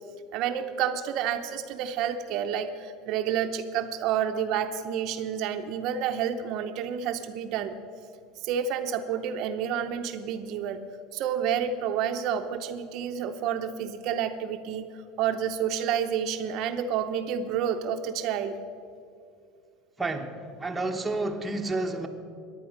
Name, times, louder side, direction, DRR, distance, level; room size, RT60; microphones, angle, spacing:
voice 1, 0.3-7.7 8.4-10.8 11.1-14.9 15.2-18.6, right 8 dB, 55° right, 7 dB, 0.7 m, -29 dB
voice 2, 20.0-22.1, right 2 dB, 10° right, 2 dB, 1.1 m, -30 dB
14.5 x 10.5 x 6.5 m, 2.4 s
supercardioid pair, 135°, 0 cm